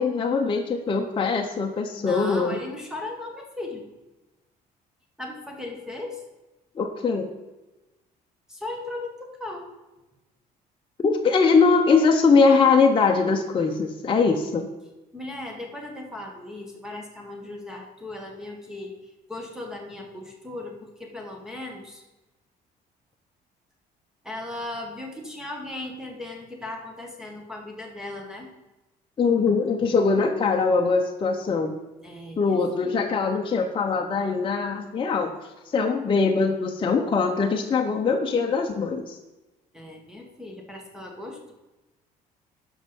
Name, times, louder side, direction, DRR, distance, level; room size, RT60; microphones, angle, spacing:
voice 1, 0.0-2.6 6.8-7.3 11.0-14.7 29.2-31.7 32.4-35.3 35.7-39.2, left 4 dB, 30° left, 1 dB, 0.9 m, -22 dB
voice 2, 2.0-3.9 5.2-6.2 8.5-9.7 15.1-22.0 24.2-28.5 32.0-33.2 39.7-41.5, left 2 dB, 5° right, 1 dB, 1.7 m, -37 dB
12.0 x 5.6 x 5.4 m, 1.1 s
cardioid pair, 110°, 17 cm